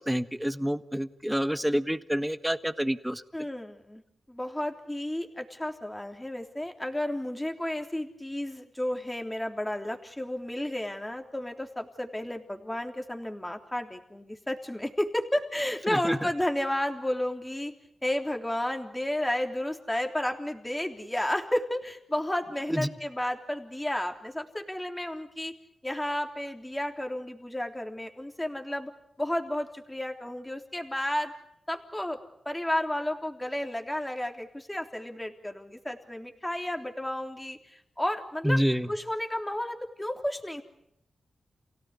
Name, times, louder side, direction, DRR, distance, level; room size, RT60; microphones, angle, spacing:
voice 1, 0.0-3.2 15.9-16.2 22.7-22.9 38.4-38.9, equal, 5° right, 11 dB, 1.4 m, -28 dB
voice 2, 3.3-4.0 4.3-17.7 18.0-25.5 25.8-28.9 29.2-31.3 31.7-32.2 32.5-38.6 38.9-40.6, left 1 dB, 10° left, 4 dB, 3.4 m, -32 dB
28.5 x 17.5 x 9.7 m, 0.80 s
cardioid pair, 65°, 0 cm